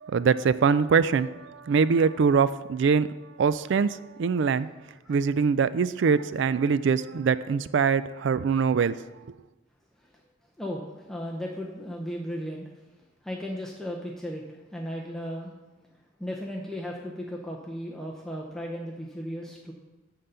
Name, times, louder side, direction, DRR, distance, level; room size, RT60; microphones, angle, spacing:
voice 1, 0.0-3.1 3.4-4.7 5.1-8.9, right 5 dB, 65° right, 15 dB, 0.3 m, -23 dB
voice 2, 10.6-12.7 13.2-15.5 16.2-19.7, equal, ahead, -2 dB, 0.6 m, -35 dB
9.8 x 3.8 x 6.8 m, 1.1 s
head